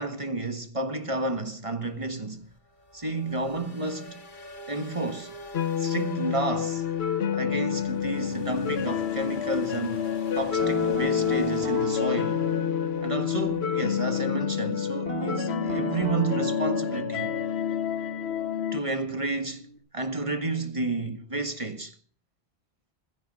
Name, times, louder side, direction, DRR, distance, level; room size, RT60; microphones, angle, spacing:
voice 1, 0.0-2.5 2.9-4.3 4.7-5.3 5.8-6.8 7.3-12.4 13.0-17.3 18.7-19.7 19.9-22.0, right 2 dB, 30° right, 1.6 m, -31 dB
sound 1, 1.8-14.2, left 1 dB, 50° left, 2.3 m, -47 dB
sound 2, 5.5-18.8, left 9 dB, 75° left, 1.1 m, -28 dB
Guitar, 10.6-14.4 15.0-19.8, right 1 dB, 65° right, 3.5 m, -35 dB
16.5 x 14.0 x 5.3 m
omnidirectional pair, 1.1 m